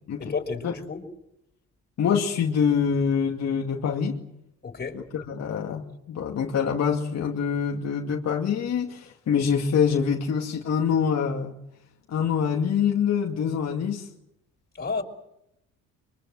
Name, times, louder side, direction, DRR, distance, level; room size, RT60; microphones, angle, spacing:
voice 1, 0.2-1.0 4.6-5.0 14.7-15.0, left 4 dB, 30° left, 5.6 m, -31 dB
voice 2, 2.0-4.2 4.9-11.6 12.1-14.1, left 7 dB, 60° left, 2.4 m, -25 dB
24.5 x 24.0 x 7.8 m
cardioid pair, 85°, 31 cm